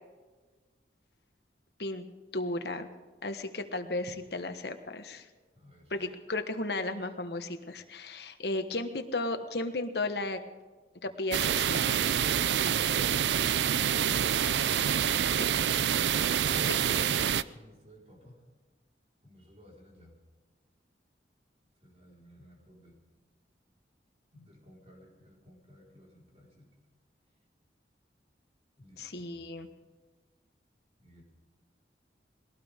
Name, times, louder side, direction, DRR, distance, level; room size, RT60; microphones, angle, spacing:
voice 1, 2.3-2.9 3.2-5.3 5.9-10.4 11.0-12.0 15.3-15.5 29.0-29.7, left 2 dB, 70° left, 8 dB, 1.3 m, -34 dB
voice 2, 5.5-6.1 12.8-13.7 15.3-15.7 16.0-18.4 19.2-20.2 21.8-23.0 24.3-26.7 28.8-29.4 31.0-31.2, left 1 dB, 35° right, -2 dB, 4.6 m, -53 dB
sound 1, 11.3-17.4, right 9 dB, 80° right, 0.5 m, -27 dB
21.5 x 18.0 x 3.7 m, 1.3 s
head